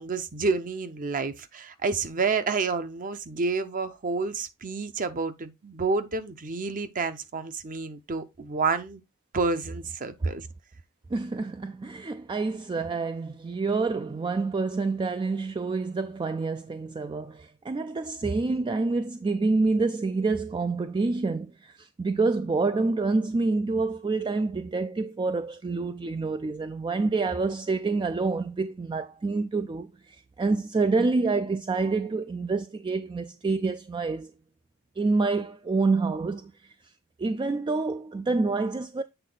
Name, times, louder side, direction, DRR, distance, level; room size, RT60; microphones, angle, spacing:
voice 1, 0.0-9.0 9.3-10.5, right 4 dB, 40° right, 0.7 m, -29 dB
voice 2, 11.1-34.3 35.0-36.7 37.2-39.0, right 3 dB, 20° right, 0.3 m, -27 dB
8.0 x 3.7 x 3.9 m
head